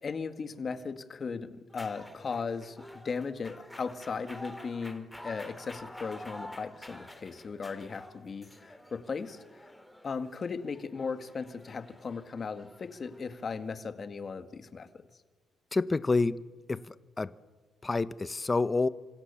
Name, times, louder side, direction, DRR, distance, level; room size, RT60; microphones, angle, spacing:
voice 1, 0.0-2.8 3.0-9.7 10.0-15.1, left 5 dB, 40° left, 2.0 m, -37 dB
sound 1, 1.7-13.7, left 1 dB, 5° left, 3.1 m, -49 dB
voice 2, 15.7-16.4 16.7-17.3 17.8-18.9, left 3 dB, 25° left, 1.0 m, -28 dB
27.5 x 26.0 x 7.2 m
cardioid pair, 90°, 0 cm